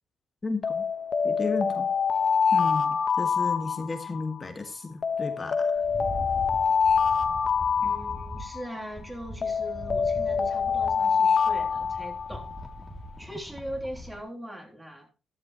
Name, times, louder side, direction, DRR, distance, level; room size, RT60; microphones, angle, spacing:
voice 1, 0.4-0.8 1.2-1.9 2.5-5.7, left 3 dB, 25° left, 1.8 m, -33 dB
Alarm, 0.6-4.3 5.0-8.7 9.4-12.6, left 6 dB, 45° left, 1.3 m, -25 dB
Rattle, 5.8-14.2, equal, 5° left, 2.5 m, -41 dB
voice 2, 7.8-12.5 13.2-15.1, equal, 10° right, 3.3 m, -40 dB
13.5 x 12.0 x 3.1 m
cardioid pair, 90°, 0 cm